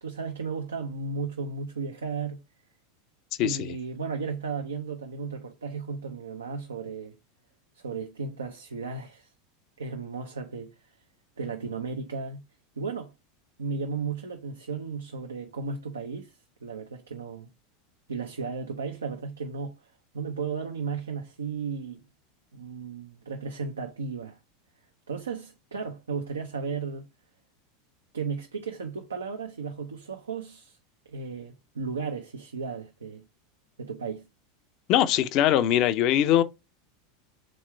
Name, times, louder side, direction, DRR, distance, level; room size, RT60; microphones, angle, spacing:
voice 1, 0.0-2.4 3.4-7.2 7.7-9.3 9.8-10.8 11.4-12.4 12.8-13.1 13.6-17.5 18.1-22.0 22.5-24.4 25.1-27.1 28.1-30.8 31.1-33.2 33.8-34.3, right 5 dB, 85° right, 0.5 m, -35 dB
voice 2, 34.9-36.4, left 11 dB, 50° left, 0.5 m, -21 dB
3.6 x 3.1 x 4.3 m
hypercardioid pair, 90°, 0 cm